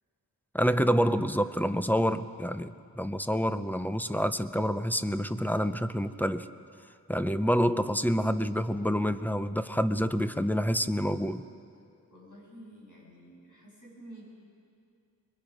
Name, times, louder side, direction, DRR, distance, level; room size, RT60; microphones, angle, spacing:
voice 1, 0.5-6.5 7.1-11.4, equal, 5° left, 11 dB, 0.6 m, -27 dB
voice 2, 12.1-14.2, right 1 dB, 55° left, -4 dB, 7.3 m, -50 dB
25.5 x 21.5 x 5.4 m, 2.3 s
wide cardioid pair, 110°, 37 cm